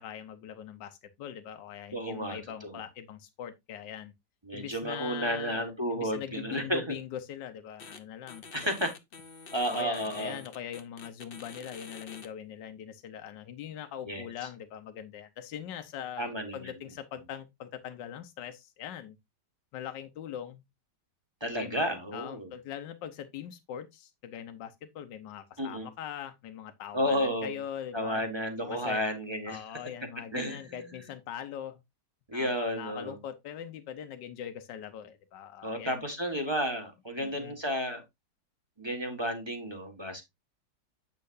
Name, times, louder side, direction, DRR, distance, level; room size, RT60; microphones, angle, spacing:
voice 1, 0.0-4.1 4.5-5.7 5.9-8.4 9.7-19.2 19.7-20.6 21.5-21.9 22.1-28.2 28.7-29.0 29.5-31.8 32.3-36.0 37.2-37.5, left 9 dB, 75° left, 1.5 m, -41 dB
voice 2, 1.9-2.8 4.4-6.9 8.5-9.0 9.5-10.4 14.1-14.3 16.2-16.7 21.4-22.5 25.6-25.9 26.9-27.6 27.9-29.6 30.3-30.6 30.9-31.1 32.3-33.2 35.6-38.0 38.8-40.2, equal, 15° right, 1.6 m, -32 dB
sound 1, 7.8-8.0 8.3-12.3, left 5 dB, 40° left, 0.9 m, -47 dB
8.5 x 6.6 x 2.6 m
omnidirectional pair, 2.0 m